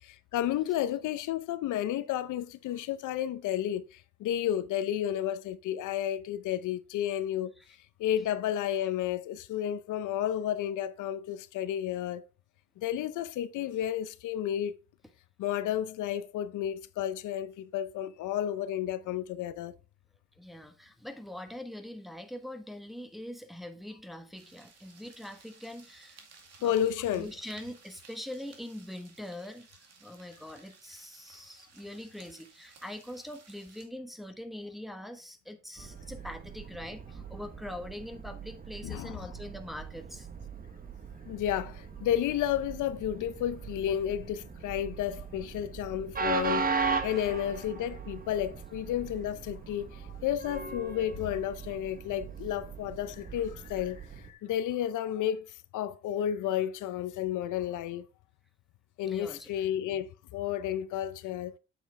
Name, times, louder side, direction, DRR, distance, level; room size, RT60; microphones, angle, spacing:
voice 1, 0.0-7.5 8.0-12.2 12.8-14.8 15.4-19.7 26.6-27.3 35.8-35.9 38.8-39.3 41.3-58.1 59.0-61.6, left 11 dB, 80° left, 0.7 m, -32 dB
voice 2, 20.4-26.2 26.6-26.7 27.1-40.3 59.0-59.5, left 1 dB, ahead, 1.2 m, -43 dB
sound 1, 24.3-33.9, right 5 dB, 55° right, 2.3 m, -57 dB
Train, 35.8-54.3, right 5 dB, 30° right, 1.2 m, -38 dB
7.9 x 7.0 x 3.3 m
cardioid pair, 90°, 30 cm